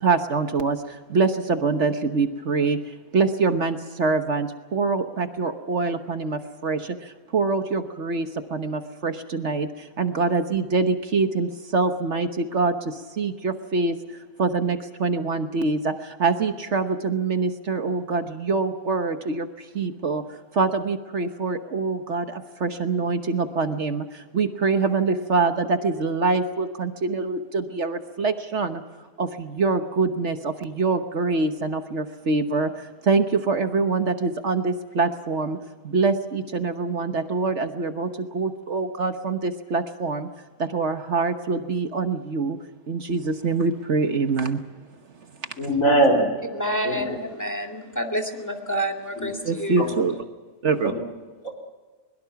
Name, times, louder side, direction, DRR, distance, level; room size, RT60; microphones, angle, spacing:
voice 1, 0.0-28.8 29.2-35.6 35.8-40.3 40.6-42.6 42.9-44.6 45.4-45.5 49.4-50.2 50.6-50.9, right 4 dB, 50° right, 8 dB, 1.3 m, -25 dB
voice 2, 45.6-46.2 46.8-47.2 49.2-49.3 49.9-50.1 50.8-51.0 51.4-51.5, right 1 dB, 60° left, 0 dB, 4.7 m, -21 dB
voice 3, 46.5-49.9, equal, 10° left, 2 dB, 2.1 m, -28 dB
22.5 x 22.0 x 5.9 m, 1.3 s
omnidirectional pair, 1.6 m